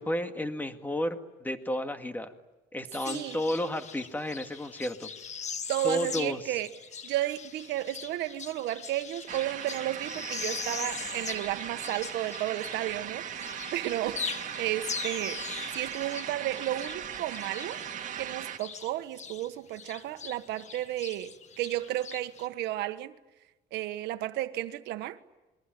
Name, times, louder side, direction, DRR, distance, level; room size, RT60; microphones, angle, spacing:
voice 1, 0.0-2.3 2.7-5.1 5.8-6.6, left 1 dB, 10° left, 2.1 m, -32 dB
sound 1, 2.9-13.1 13.4-19.5 19.7-22.5, left 6 dB, 45° left, 1.6 m, -41 dB
voice 2, 3.0-3.4 5.7-6.7 7.0-13.4 13.7-15.4 15.7-17.8 18.2-23.1 23.7-25.2, right 14 dB, 85° right, 1.4 m, -33 dB
sound 2, 9.3-18.6, right 8 dB, 50° right, 2.3 m, -38 dB
27.5 x 22.5 x 9.2 m
cardioid pair, 110°, 17 cm